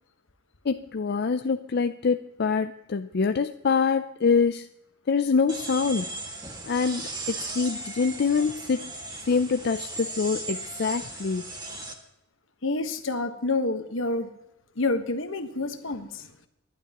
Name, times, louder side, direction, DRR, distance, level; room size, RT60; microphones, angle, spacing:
voice 1, 0.6-4.7 5.1-6.1 6.6-8.8 9.3-11.5, left 5 dB, 55° left, 8 dB, 0.5 m, -25 dB
sound 1, 5.5-11.9, right 2 dB, 20° right, 1.9 m, -37 dB
voice 2, 12.6-14.3 14.8-16.3, left 2 dB, 75° left, 8 dB, 1.3 m, -28 dB
25.0 x 11.5 x 3.0 m, 0.87 s
head